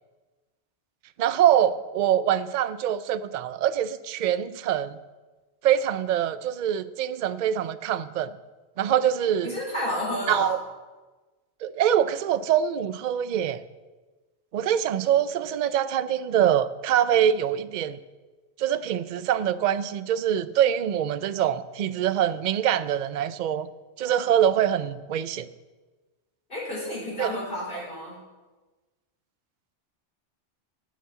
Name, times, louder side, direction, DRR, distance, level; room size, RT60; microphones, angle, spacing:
voice 1, 1.2-5.0 5.6-8.3 8.8-9.6 10.3-10.6 11.6-13.6 14.5-18.0 18.6-23.7 24.0-25.5 27.2-27.4, right 10 dB, 55° right, 14 dB, 0.5 m, -24 dB
voice 2, 9.4-10.5 26.5-28.2, left 1 dB, 50° left, -5 dB, 3.9 m, -31 dB
9.3 x 8.4 x 7.3 m, 1.2 s
omnidirectional pair, 1.2 m